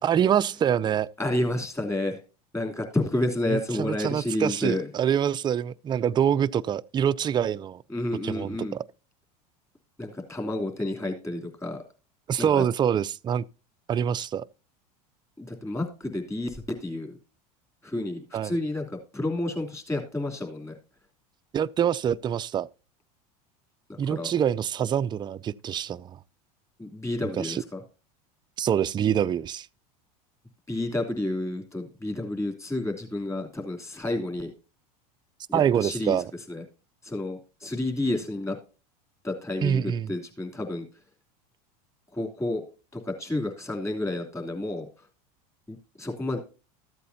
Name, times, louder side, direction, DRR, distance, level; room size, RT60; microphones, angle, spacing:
voice 1, 0.1-1.1 3.5-7.8 8.2-8.8 12.3-13.4 13.9-14.4 18.3-18.5 21.5-22.7 24.0-26.1 27.4-27.6 28.6-29.7 35.5-36.3 39.6-40.1, right 9 dB, 25° right, 0.4 m, -25 dB
voice 2, 1.2-2.2 2.5-4.9 7.9-8.8 10.0-11.8 12.4-12.6 15.4-17.2 17.8-20.8 23.9-24.3 26.8-27.8 30.7-34.5 35.5-36.2 36.5-36.6 37.0-38.6 39.2-40.9 42.1-42.6 42.9-44.9 45.7-46.4, left 1 dB, 15° left, 2.9 m, -30 dB
14.0 x 8.3 x 2.7 m
hypercardioid pair, 100°, 20 cm